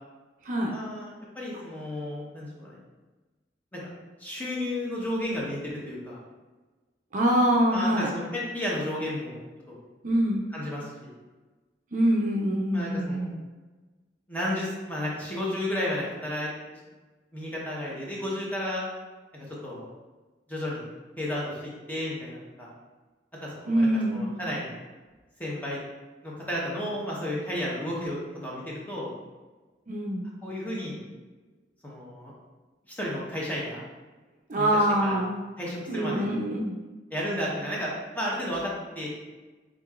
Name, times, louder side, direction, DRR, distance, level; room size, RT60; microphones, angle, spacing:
voice 1, 0.7-2.8 3.7-3.8 4.2-6.2 7.7-9.4 9.7-9.8 10.5-11.2 12.7-13.3 14.3-16.5 17.3-18.8 19.3-19.9 20.5-20.8 21.2-22.7 23.4-24.8 25.4-25.8 26.2-29.1 30.4-31.0 31.8-32.3 32.9-33.8 34.6-35.2 35.6-36.3 37.1-39.1, left 1 dB, 10° left, -5 dB, 0.9 m, -32 dB
voice 2, 7.1-8.1 10.0-10.5 11.9-13.4 23.7-24.4 29.9-30.3 34.5-35.4 35.9-36.8, right 1 dB, 45° right, -1 dB, 0.5 m, -25 dB
4.9 x 3.7 x 2.4 m, 1.2 s
head